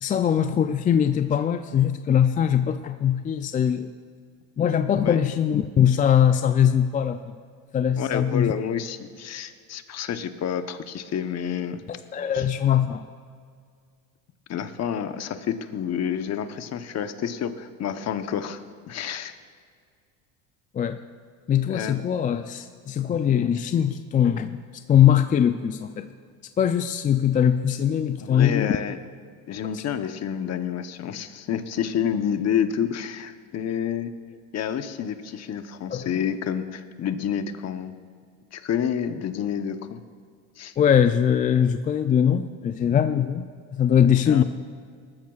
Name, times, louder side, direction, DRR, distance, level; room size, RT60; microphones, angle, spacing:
voice 1, 0.0-3.9 4.6-7.4 7.7-8.5 12.1-13.0 20.7-21.0 21.5-24.6 24.9-26.1 26.6-28.8 29.7-29.8 35.9-36.2 40.8-43.5 43.7-44.4, left 9 dB, 20° left, 9 dB, 0.3 m, -21 dB
voice 2, 8.0-12.0 12.3-12.5 14.5-18.6 18.9-19.4 21.7-22.0 28.2-29.0 29.5-34.1 34.5-37.9 38.5-40.0 40.6-40.7 44.3-44.4, left 8 dB, 40° left, 9 dB, 0.9 m, -29 dB
20.0 x 13.5 x 2.4 m, 2.1 s
supercardioid pair, 105°, 39 cm